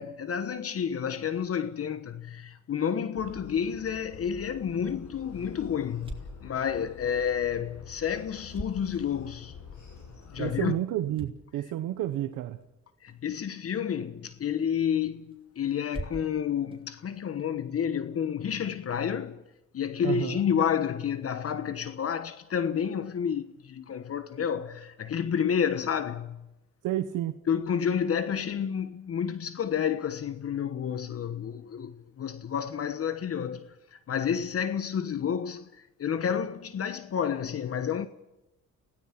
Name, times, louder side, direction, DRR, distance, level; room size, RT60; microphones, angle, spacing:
voice 1, 0.0-6.1 6.4-9.6 10.3-10.8 13.0-19.4 19.7-26.4 27.5-38.1, left 8 dB, 50° left, 1.3 m, -30 dB
sound 1, 3.1-10.6, left 6 dB, 70° left, 7.1 m, -47 dB
sound 2, 4.3-17.9, right 1 dB, 15° right, 3.9 m, -48 dB
voice 2, 10.4-12.6 20.0-20.4 26.8-27.4, right 13 dB, 90° right, 1.2 m, -30 dB
29.0 x 17.5 x 6.0 m
cardioid pair, 90°, 30 cm